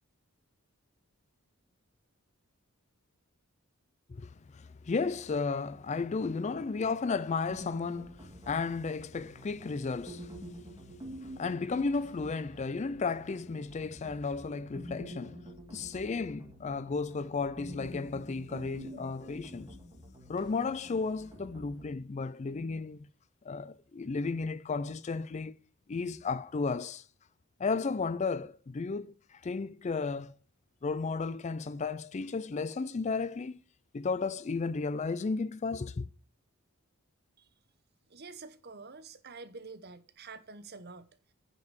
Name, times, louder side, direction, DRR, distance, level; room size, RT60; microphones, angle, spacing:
voice 1, 4.1-10.4 11.2-19.8 20.3-23.1 23.4-25.5 25.9-27.1 27.6-30.3 30.8-33.6 33.9-36.1, left 4 dB, 30° left, 0.4 m, -34 dB
sound 1, 7.4-21.9, equal, 20° right, 2.5 m, -48 dB
voice 2, 38.1-41.1, right 4 dB, 45° right, 0.9 m, -47 dB
9.4 x 5.3 x 7.4 m
head